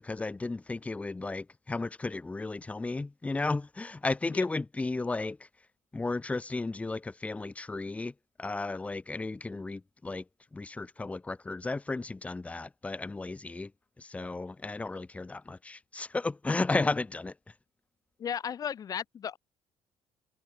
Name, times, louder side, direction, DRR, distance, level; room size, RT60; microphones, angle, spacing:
voice 1, 0.0-5.4 5.9-8.1 8.4-10.2 10.5-13.7 14.0-17.3, left 3 dB, 15° left, 3.6 m, -34 dB
voice 2, 18.2-19.4, left 8 dB, 40° left, 4.0 m, -35 dB
cardioid pair, 135°, 9 cm